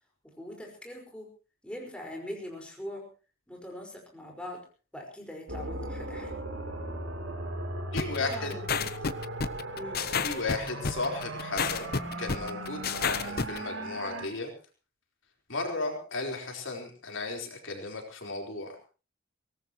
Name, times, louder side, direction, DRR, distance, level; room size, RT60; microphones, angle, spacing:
voice 1, 0.4-1.3 1.6-3.1 3.5-4.7 4.9-6.4 8.0-8.9 9.8-10.0, left 1 dB, 5° left, 0 dB, 5.1 m, -42 dB
sound 1, 5.5-14.3, right 1 dB, 65° right, 3.5 m, -38 dB
voice 2, 7.9-8.5 10.2-14.5 15.5-18.8, left 3 dB, 70° left, 2 dB, 4.4 m, -35 dB
sound 2, 8.0-13.6, left 5 dB, 50° left, 0.9 m, -30 dB
23.5 x 18.0 x 3.1 m, 0.35 s
head